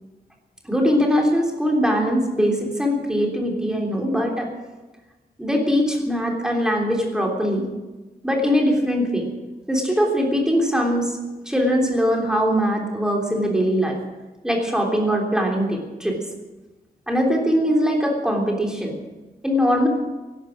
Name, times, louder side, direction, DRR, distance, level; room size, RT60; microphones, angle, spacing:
voice 1, 0.7-4.5 5.4-7.7 8.2-9.3 9.7-11.2 11.4-14.0 14.4-16.2 17.1-18.9 19.4-19.9, equal, 5° right, 0 dB, 3.4 m, -21 dB
16.5 x 11.5 x 7.4 m, 1.2 s
wide cardioid pair, 175°, 16 cm